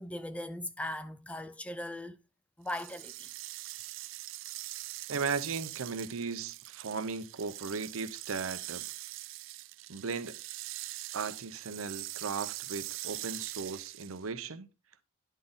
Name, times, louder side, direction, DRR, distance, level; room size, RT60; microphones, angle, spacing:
voice 1, 0.0-2.2 2.6-3.3, left 1 dB, 5° left, 0.4 m, -39 dB
sound 1, 2.7-14.3, right 18 dB, 65° right, 0.3 m, -43 dB
voice 2, 5.1-8.8 9.9-10.4 11.1-14.7, right 5 dB, 85° right, 0.7 m, -37 dB
10.0 x 4.1 x 3.7 m
head